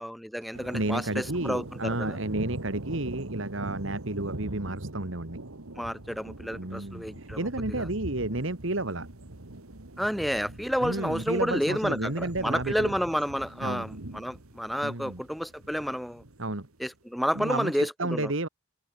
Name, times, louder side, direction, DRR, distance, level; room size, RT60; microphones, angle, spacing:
voice 1, 0.0-2.2 5.8-7.9 10.0-16.2 16.8-18.3, equal, ahead, 0.3 m, -30 dB
sound 1, 0.5-16.6, right 1 dB, 80° right, 2.1 m, -42 dB
voice 2, 0.7-5.4 6.6-9.1 10.8-12.9 13.6-13.8 14.8-15.2 16.4-16.7 17.4-18.5, right 2 dB, 65° right, 2.1 m, -31 dB
head